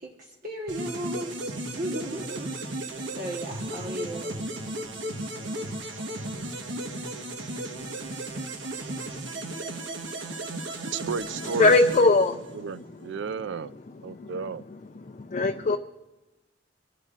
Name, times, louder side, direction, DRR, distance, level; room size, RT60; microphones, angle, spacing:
voice 1, 0.0-4.4, right 1 dB, 50° right, 1.2 m, -36 dB
sound 1, 0.7-12.8, right 1 dB, 90° right, 1.2 m, -35 dB
voice 2, 10.9-12.1 12.5-13.7 14.0-14.6, right 5 dB, 70° right, 0.4 m, -33 dB
voice 3, 11.6-12.4 14.2-14.3 15.3-15.8, left 3 dB, 40° left, 0.4 m, -19 dB
24.5 x 12.0 x 2.5 m
head